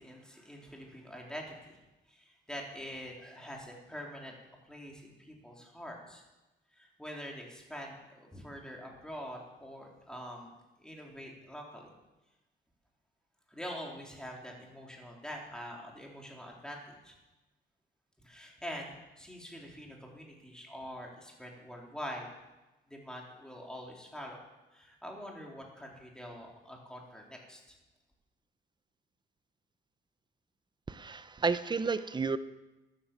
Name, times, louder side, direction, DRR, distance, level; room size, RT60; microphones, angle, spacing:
voice 1, 0.0-1.8 2.1-4.3 4.6-6.2 6.7-10.5 10.8-11.9 13.5-17.2 18.2-22.3 22.9-24.4 24.7-27.6, equal, 5° left, -1 dB, 3.9 m, -45 dB
voice 2, 30.9-32.4, right 4 dB, 20° right, 13 dB, 0.8 m, -31 dB
13.5 x 10.5 x 7.5 m, 1.1 s
cardioid pair, 90°, 20 cm